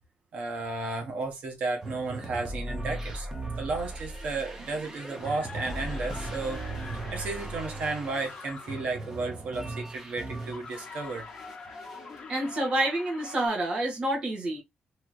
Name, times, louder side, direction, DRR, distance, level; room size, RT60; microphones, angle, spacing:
voice 1, 0.3-3.3 3.6-6.7 7.1-11.3, right 3 dB, 55° right, 0.9 m, -33 dB
sound 1, 1.8-11.0 11.3-12.1, right 2 dB, 15° right, 0.8 m, -38 dB
sound 2, 4.8-9.0 10.4-13.5, left 4 dB, 40° left, 0.9 m, -45 dB
voice 2, 12.3-14.6, right 1 dB, 35° right, 1.4 m, -28 dB
3.1 x 2.8 x 2.4 m
wide cardioid pair, 165°, 3 cm